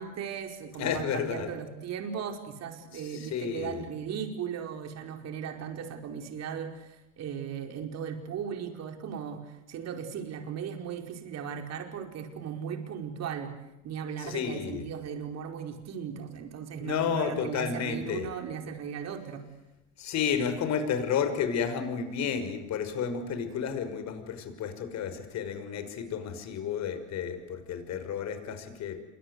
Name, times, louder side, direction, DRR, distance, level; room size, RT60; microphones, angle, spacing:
voice 1, 0.0-13.5 13.8-19.4, right 7 dB, 45° right, 5 dB, 5.0 m, -37 dB
voice 2, 0.8-1.5 2.9-3.8 14.2-14.8 16.8-18.3 20.0-29.0, left 7 dB, 45° left, 9 dB, 5.7 m, -31 dB
28.5 x 24.0 x 8.2 m, 0.91 s
hypercardioid pair, 90°, 37 cm